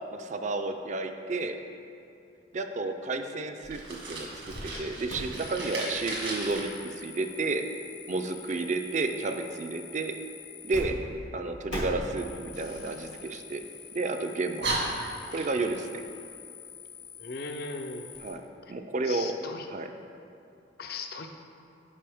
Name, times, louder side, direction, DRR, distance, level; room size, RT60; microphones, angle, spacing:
voice 1, 0.1-1.6 2.5-3.8 4.1-7.6 8.1-10.1 10.6-10.9 11.3-13.6 13.9-14.7 15.3-16.0 18.2-18.4 18.7-19.4 19.7-19.9, right 3 dB, 40° right, 6 dB, 0.4 m, -31 dB
Fire, 3.6-6.6 12.5-13.8 14.2-14.3 14.6-15.8, right 2 dB, 80° right, 1.5 m, -36 dB
sound 1, 4.5-4.8 5.1-10.8 11.1-11.2 11.7-18.3, left 4 dB, 85° left, 1.5 m, -44 dB
voice 2, 17.2-18.1 19.1-19.7 20.8-21.3, left 3 dB, 55° left, 4 dB, 0.5 m, -38 dB
10.0 x 5.1 x 3.5 m, 2.6 s
head